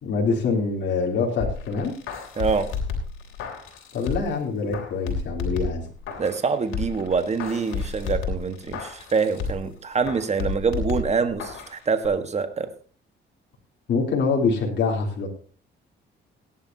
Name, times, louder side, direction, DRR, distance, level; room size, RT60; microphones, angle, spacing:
voice 1, 0.0-1.9 3.9-5.8 13.9-15.3, left 4 dB, 65° left, 0 dB, 3.4 m, -25 dB
sound 1, 1.4-4.4 4.7-6.4 6.7-9.7 10.1-11.7 12.0-12.1, left 5 dB, 90° left, 3.2 m, -31 dB
voice 2, 2.4-2.7 6.2-12.7, right 5 dB, 35° right, 9 dB, 1.5 m, -25 dB
18.0 x 10.5 x 2.9 m, 0.42 s
cardioid pair, 90°, 20 cm